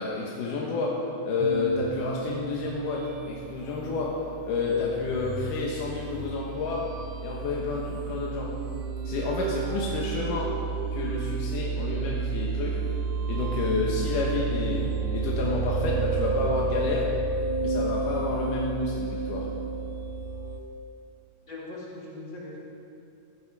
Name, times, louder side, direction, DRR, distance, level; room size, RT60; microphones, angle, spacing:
voice 1, 0.0-4.2 4.4-6.9 7.2-8.6 9.0-10.6 10.9-12.8 13.3-14.9 15.1-17.1 17.6-19.5, left 4 dB, 85° left, -3 dB, 2.9 m, -30 dB
sound 1, 1.4-20.6, right 4 dB, 80° right, 2.3 m, -31 dB
voice 2, 21.5-22.6, left 2 dB, 40° left, -5 dB, 2.7 m, -40 dB
16.0 x 12.0 x 4.8 m, 2.6 s
omnidirectional pair, 3.7 m